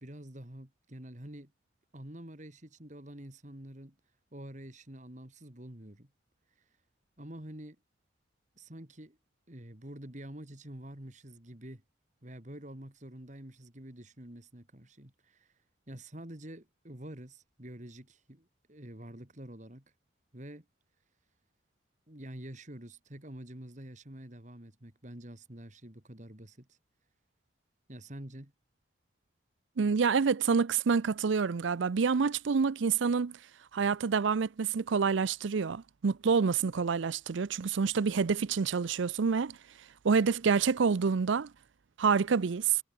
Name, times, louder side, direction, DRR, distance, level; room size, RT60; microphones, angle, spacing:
voice 1, 0.0-1.5 1.9-4.0 4.3-6.1 7.2-7.8 8.6-9.2 9.5-11.8 12.2-15.5 15.9-19.8 20.3-20.7 22.1-26.8 27.9-28.5, right 1 dB, 40° right, 2.6 m, -47 dB
voice 2, 29.8-33.4 33.7-39.6 40.0-41.5 42.0-42.8, right 5 dB, 75° right, 0.5 m, -27 dB
head